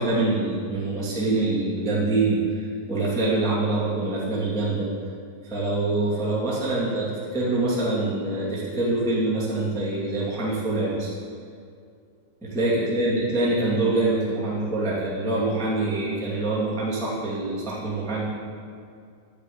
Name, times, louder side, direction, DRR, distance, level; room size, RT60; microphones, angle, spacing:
voice 1, 0.0-4.9 5.5-11.1 12.4-18.2, right 2 dB, ahead, -7 dB, 1.2 m, -25 dB
9.7 x 6.8 x 8.6 m, 2.3 s
omnidirectional pair, 5.2 m